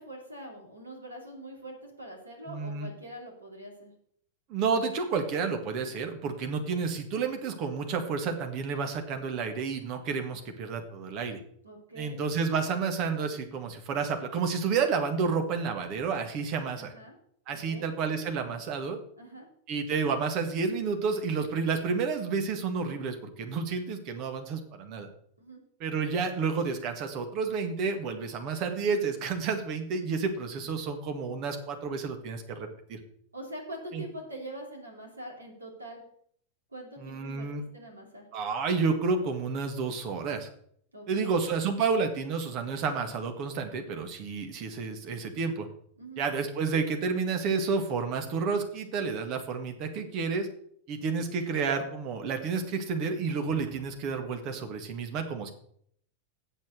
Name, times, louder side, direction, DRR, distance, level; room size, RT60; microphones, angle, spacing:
voice 1, 0.0-3.9 11.6-12.2 16.8-17.2 17.7-17.9 19.2-19.5 25.4-25.6 33.3-36.0 36.7-38.3 40.9-41.4 46.0-46.2, right 1 dB, 80° right, 1 dB, 2.9 m, -43 dB
voice 2, 2.5-2.9 4.5-11.4 12.0-16.9 17.5-19.0 19.7-25.1 25.8-33.0 33.9-34.0 37.0-37.6 38.3-40.5 41.1-45.7 46.2-50.5 50.9-55.5, right 5 dB, 40° right, 5 dB, 1.8 m, -30 dB
8.0 x 7.4 x 6.6 m, 0.66 s
figure-of-eight pair, 90°, 0 cm